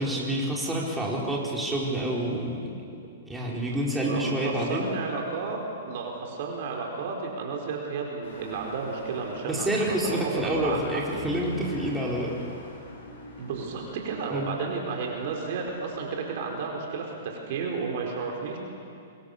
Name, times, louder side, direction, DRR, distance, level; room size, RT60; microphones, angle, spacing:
voice 1, 0.0-2.6 3.3-4.9 9.5-12.3 14.3-14.5, right 1 dB, 5° right, -4 dB, 4.5 m, -28 dB
voice 2, 3.4-5.6 5.9-10.8 11.1-11.3 13.4-18.6, right 4 dB, 55° right, 1 dB, 4.6 m, -32 dB
sound 1, 8.2-16.6, left 2 dB, 65° left, 7.3 m, -45 dB
24.5 x 22.0 x 6.8 m, 2.4 s
hypercardioid pair, 115°, 0 cm